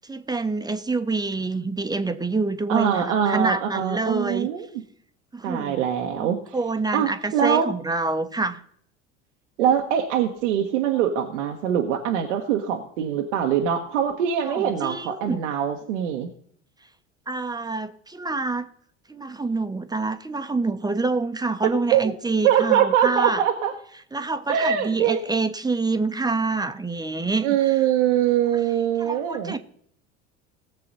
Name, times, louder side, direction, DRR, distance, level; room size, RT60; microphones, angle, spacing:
voice 1, 0.0-4.5 5.3-5.8 6.1-8.6 14.4-15.4 17.3-18.7 19.1-23.4 24.1-27.8 29.0-29.6, right 3 dB, 10° right, 9 dB, 1.0 m, -27 dB
voice 2, 2.7-4.7 5.4-6.4 6.9-7.7 9.6-16.3 21.9-22.0 22.4-23.7 24.5-25.2 27.4-29.5, right 9 dB, 75° right, 3 dB, 1.3 m, -23 dB
18.5 x 6.8 x 4.1 m, 0.64 s
hypercardioid pair, 75°, 37 cm